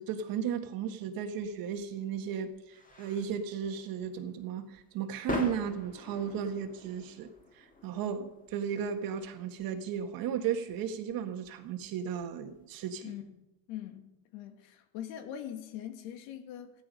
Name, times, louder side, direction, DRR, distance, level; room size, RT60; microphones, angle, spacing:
voice 1, 0.0-7.3 7.6-13.1, right 7 dB, 50° right, 1.8 m, -35 dB
sound 1, 1.4-12.7, left 3 dB, 20° left, 2.5 m, -45 dB
voice 2, 13.0-16.7, left 10 dB, 75° left, 2.3 m, -43 dB
15.0 x 12.5 x 5.4 m
supercardioid pair, 130°, 43 cm